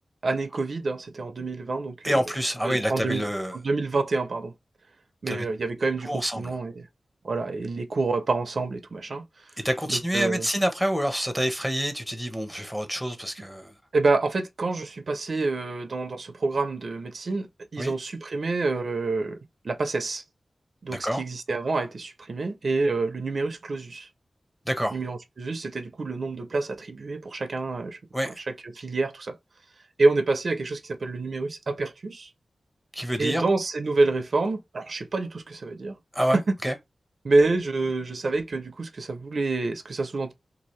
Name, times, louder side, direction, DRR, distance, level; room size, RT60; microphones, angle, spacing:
voice 1, 0.2-2.2 2.6-3.2 3.5-4.5 5.2-6.9 7.2-9.2 9.9-10.5 13.9-17.5 17.7-19.4 19.6-20.2 20.8-24.1 24.9-28.0 28.4-29.4 30.0-32.3 33.2-35.9 37.2-40.3, right 3 dB, 60° right, 0.5 m, -27 dB
voice 2, 2.0-3.5 5.3-5.4 6.0-6.5 9.6-13.7 17.8-17.9 20.9-21.2 24.7-25.0 28.1-28.4 32.9-33.4 36.1-36.7, equal, ahead, 0.7 m, -27 dB
2.7 x 2.4 x 3.0 m
wide cardioid pair, 95°, 0 cm